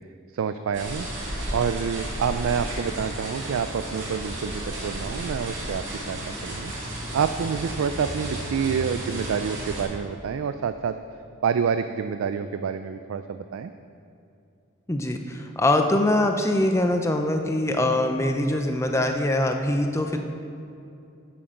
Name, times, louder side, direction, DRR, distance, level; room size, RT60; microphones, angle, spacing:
voice 1, 0.3-1.1 1.5-6.7 7.1-11.0 11.4-13.7, right 6 dB, 75° right, 10 dB, 0.3 m, -27 dB
sound 1, 0.7-9.8, right 1 dB, 60° right, 2.6 m, -33 dB
voice 2, 14.9-20.2, left 1 dB, 15° left, 4 dB, 0.5 m, -23 dB
10.5 x 7.7 x 5.1 m, 2.7 s
head